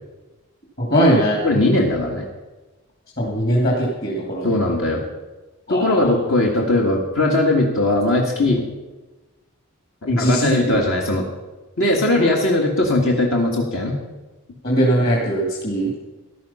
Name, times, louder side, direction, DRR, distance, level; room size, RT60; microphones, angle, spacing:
voice 1, 0.8-1.4 3.2-4.6 5.7-6.0 10.1-10.5 12.2-12.3 14.6-15.9, equal, 45° left, -3 dB, 2.6 m, -20 dB
voice 2, 1.4-2.3 4.4-5.0 5.7-8.6 10.0-11.3 11.8-13.9, left 2 dB, 60° left, -1 dB, 1.8 m, -19 dB
14.5 x 11.0 x 5.7 m, 1.1 s
head